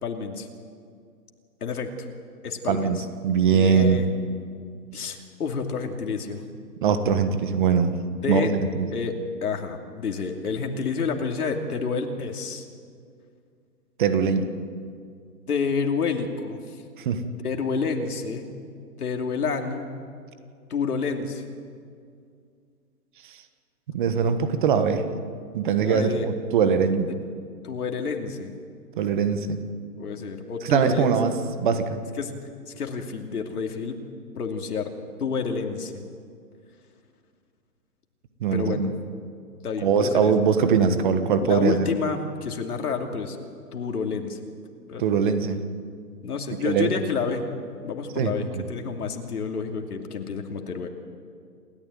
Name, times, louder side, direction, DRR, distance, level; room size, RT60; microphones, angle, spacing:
voice 1, 0.0-0.5 1.6-1.9 2.4-2.9 3.5-4.1 4.9-6.4 8.2-8.5 8.9-9.2 9.4-12.7 15.5-16.8 17.4-18.5 19.0-19.9 20.7-21.4 25.8-26.3 27.1-27.2 27.6-28.5 30.0-31.1 32.2-32.3 32.7-34.0 34.3-34.9 35.2-36.0 38.5-38.9 39.6-40.3 41.4-43.4 43.7-44.4 44.9-45.0 46.2-47.4 47.7-50.9, left 5 dB, 70° left, 3 dB, 2.8 m, -29 dB
voice 2, 2.7-3.0 3.2-4.0 6.8-8.0 8.3-8.9 14.0-14.5 17.0-17.2 23.9-25.0 25.5-27.1 29.0-29.6 30.6-31.3 31.6-32.0 38.4-38.9 39.8-41.7 45.0-45.6 46.6-46.9 48.2-48.6, right 6 dB, 30° right, 9 dB, 1.4 m, -22 dB
28.0 x 13.5 x 9.2 m, 2.2 s
hypercardioid pair, 155°, 47 cm